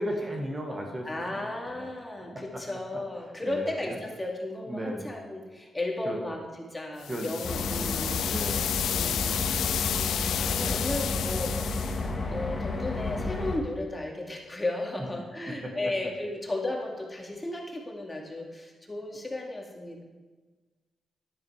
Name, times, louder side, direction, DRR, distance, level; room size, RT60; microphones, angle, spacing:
voice 1, 0.0-1.9 2.3-2.6 2.9-3.0 3.4-3.9 4.7-5.2 6.1-6.2 7.1-7.6 8.3-8.8 10.4-11.0 15.5-15.9, equal, 25° right, 1 dB, 1.7 m, -36 dB
voice 2, 1.0-8.2 8.9-20.0, left 2 dB, 20° left, 0 dB, 2.3 m, -35 dB
sound 1, 7.0-12.1, left 10 dB, 85° left, 0.4 m, -31 dB
sound 2, 7.4-13.6, left 3 dB, 40° left, 1.8 m, -31 dB
11.5 x 8.6 x 4.9 m, 1.3 s
cardioid pair, 85°, 0 cm